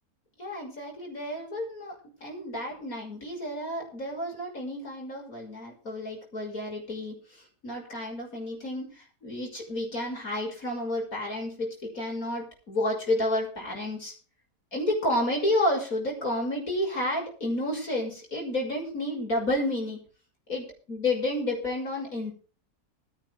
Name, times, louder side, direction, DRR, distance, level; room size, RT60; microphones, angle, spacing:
voice 1, 0.4-14.1 14.7-20.0 20.5-22.3, left 1 dB, 55° left, 0 dB, 6.8 m, -31 dB
19.5 x 11.0 x 3.5 m, 0.38 s
omnidirectional pair, 1.7 m